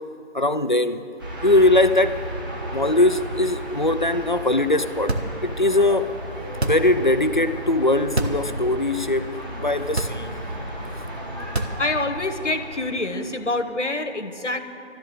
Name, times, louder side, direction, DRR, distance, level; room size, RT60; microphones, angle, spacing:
voice 1, 0.3-1.0 1.4-2.2 2.7-5.1 5.4-6.1 6.6-9.3 9.6-10.3 11.6-11.7, left 2 dB, 45° left, 0.5 m, -20 dB
sound 1, 1.2-13.6, equal, 20° right, 2.0 m, -34 dB
sound 2, 5.1-5.7 6.5-7.1 8.0-8.5 8.9-9.0 9.9-10.6 11.4-12.1, right 2 dB, 65° right, 1.3 m, -27 dB
voice 2, 11.8-14.6, left 2 dB, 85° left, 1.3 m, -26 dB
13.5 x 11.0 x 8.1 m
figure-of-eight pair, 165°, 35 cm